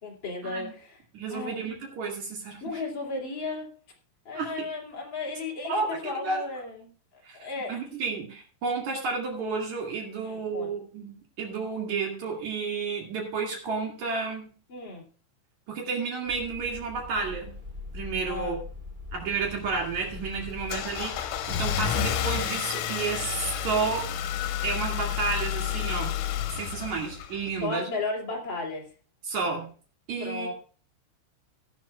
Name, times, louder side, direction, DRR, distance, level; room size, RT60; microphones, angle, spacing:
voice 1, 0.0-1.0 1.3-1.7 2.6-3.7 4.2-6.9 7.3-7.8 10.2-10.7 14.7-15.0 18.2-18.6 27.6-28.9 30.2-30.5, left 3 dB, 30° left, -2 dB, 2.5 m, -34 dB
voice 2, 1.1-2.8 4.3-4.7 5.7-6.4 7.2-7.4 7.7-14.5 15.7-17.5 17.9-18.6 19.1-24.1 24.6-26.1 26.5-27.9 29.2-29.7 30.1-30.5, right 4 dB, 45° right, 1 dB, 2.8 m, -31 dB
Los Angeles morning Ambience, 16.2-21.6, left 3 dB, 30° right, 0.9 m, -42 dB
Car / Engine starting, 19.4-27.6, left 9 dB, 80° left, 3.4 m, -31 dB
17.5 x 10.5 x 2.3 m, 0.40 s
omnidirectional pair, 5.6 m